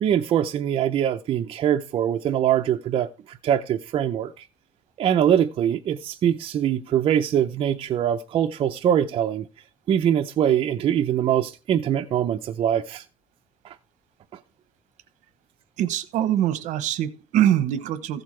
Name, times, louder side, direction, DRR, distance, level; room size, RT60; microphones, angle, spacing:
voice 1, 0.0-4.5 5.0-9.5 9.9-13.0 13.6-13.7, right 10 dB, 45° right, 0.6 m, -23 dB
voice 2, 15.8-18.2, right 11 dB, 75° right, 0.9 m, -23 dB
14.5 x 7.9 x 3.2 m
cardioid pair, 155°, 13 cm